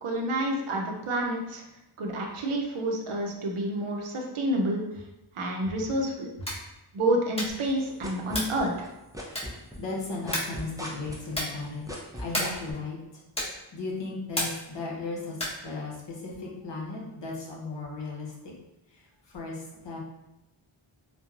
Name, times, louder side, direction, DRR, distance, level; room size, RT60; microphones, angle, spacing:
voice 1, 0.0-1.6 2.0-4.8 5.4-6.3 6.9-8.9, right 1 dB, 80° right, 1 dB, 0.6 m, -29 dB
sound 1, 6.3-6.7 7.3-7.7 8.3-8.7 9.3-9.7 10.3-10.7 11.3-11.7 12.3-12.7 13.3-13.7 14.3-14.7 15.3-15.7, left 1 dB, 10° left, 0.9 m, -32 dB
sound 2, 7.5-8.9 9.1-12.7, equal, 5° right, 0.5 m, -38 dB
voice 2, 9.4-13.0 13.7-15.4 15.6-18.5 18.9-20.0, left 3 dB, 60° left, -2 dB, 0.8 m, -36 dB
2.9 x 2.2 x 2.3 m, 0.94 s
wide cardioid pair, 55°, 49 cm